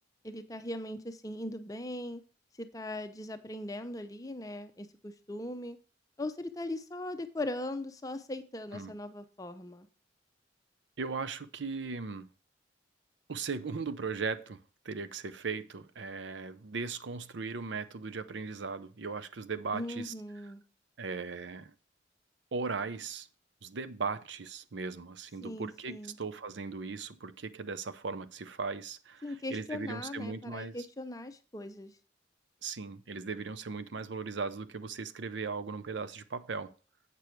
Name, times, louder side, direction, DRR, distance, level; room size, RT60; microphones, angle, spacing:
voice 1, 0.2-2.2 2.6-5.8 6.2-9.9 19.7-20.6 25.4-26.2 29.2-31.9, left 1 dB, 20° left, 0.7 m, -39 dB
voice 2, 11.0-12.3 13.3-14.6 14.8-20.1 21.0-21.7 22.5-23.3 23.6-30.8 32.6-36.7, right 4 dB, 70° right, 0.6 m, -38 dB
8.3 x 6.7 x 4.5 m
head